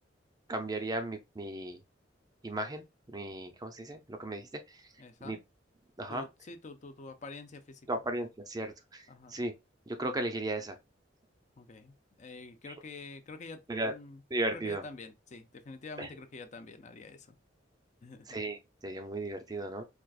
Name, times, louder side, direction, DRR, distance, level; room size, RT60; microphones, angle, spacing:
voice 1, 0.5-1.8 2.4-4.5 5.2-5.4 6.0-6.3 7.9-9.5 9.9-10.8 12.7-12.8 13.7-13.9 14.3-14.8 16.0-16.1 18.3-19.8, right 2 dB, 20° right, 0.5 m, -36 dB
voice 2, 5.0-5.4 6.1-7.8 9.1-9.4 11.6-14.2 14.5-17.4 18.0-18.3, left 3 dB, 40° left, 0.5 m, -47 dB
4.5 x 2.4 x 2.3 m
head